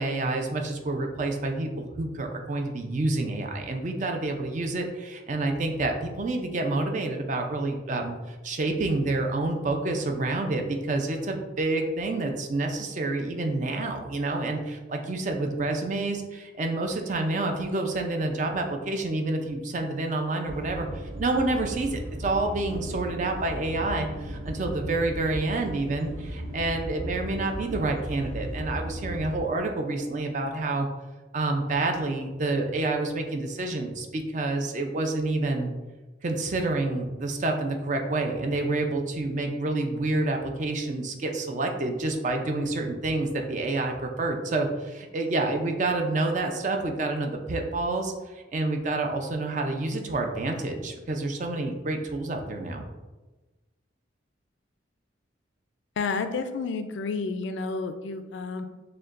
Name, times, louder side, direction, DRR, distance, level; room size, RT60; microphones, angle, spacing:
voice 1, 0.0-30.9 31.3-35.7 36.2-52.8, right 2 dB, 40° right, 3 dB, 0.4 m, -28 dB
sound 1, 20.5-29.4, equal, 75° right, 0.7 m, -36 dB
voice 2, 56.0-58.6, left 4 dB, 70° left, 9 dB, 0.3 m, -30 dB
6.5 x 2.2 x 2.4 m, 1.2 s
head